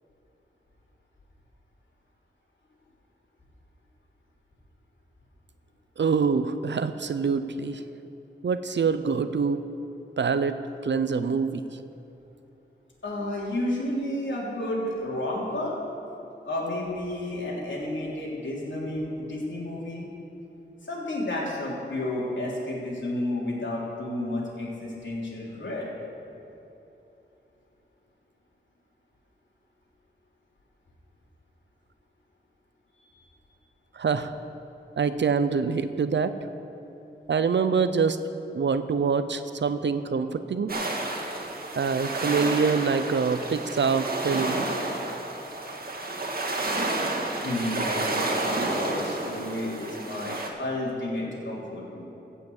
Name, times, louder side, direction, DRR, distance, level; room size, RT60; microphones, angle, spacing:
voice 1, 6.0-7.8 8.4-9.6 10.2-10.6 10.8-11.6 33.9-34.3 35.0-36.3 37.3-38.2 38.5-40.7 41.8-44.7, right 5 dB, 70° right, 11 dB, 0.6 m, -25 dB
voice 2, 13.0-15.8 16.4-20.0 20.8-25.9 33.1-33.3 47.4-52.0, left 1 dB, 75° left, -5 dB, 3.3 m, -31 dB
sound 1, 40.7-50.5, right 2 dB, 50° right, 1.8 m, -30 dB
15.5 x 5.7 x 7.9 m, 3.0 s
wide cardioid pair, 70°, 19 cm